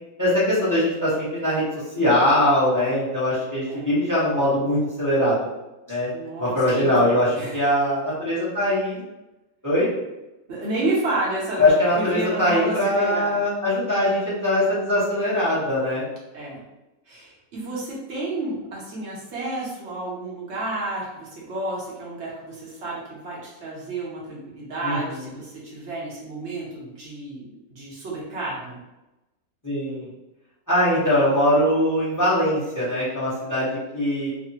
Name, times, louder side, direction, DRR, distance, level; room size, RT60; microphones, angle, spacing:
voice 1, 0.2-1.6 1.9-5.5 5.9-6.1 6.4-9.0 9.6-9.9 11.6-16.0 24.8-25.2 29.6-30.1 30.7-34.3, left 1 dB, 15° left, -10 dB, 0.7 m, -21 dB
voice 2, 6.1-7.6 10.5-13.4 16.3-16.6 17.1-28.8, right 2 dB, 50° right, -5 dB, 0.9 m, -31 dB
3.3 x 2.1 x 2.8 m, 0.99 s
omnidirectional pair, 2.0 m